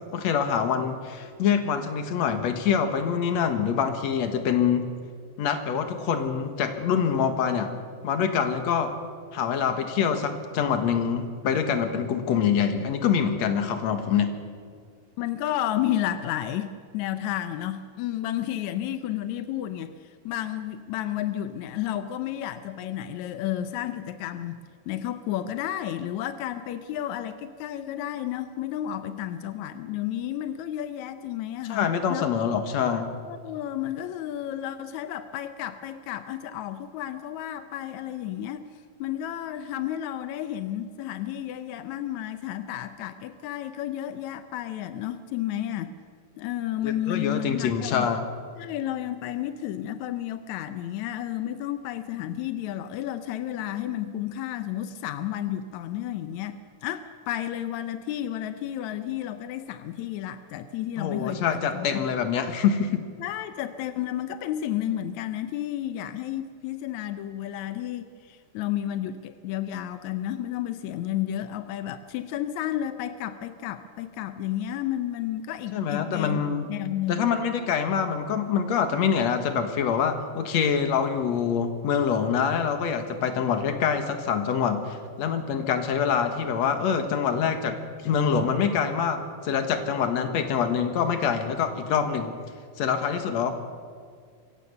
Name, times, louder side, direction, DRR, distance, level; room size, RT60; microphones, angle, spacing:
voice 1, 0.1-4.9 5.4-7.8 8.0-8.9 9.3-14.4 31.7-33.1 46.8-48.2 61.0-63.0 75.7-76.6 77.1-92.3 92.8-93.5, left 7 dB, 55° left, 7 dB, 2.4 m, -25 dB
voice 2, 15.2-32.3 33.3-38.7 39.0-45.9 46.4-48.1 48.6-62.0 63.2-76.4 76.7-77.3, left 12 dB, 80° left, 10 dB, 1.7 m, -32 dB
25.5 x 16.0 x 6.8 m, 2.1 s
omnidirectional pair, 4.2 m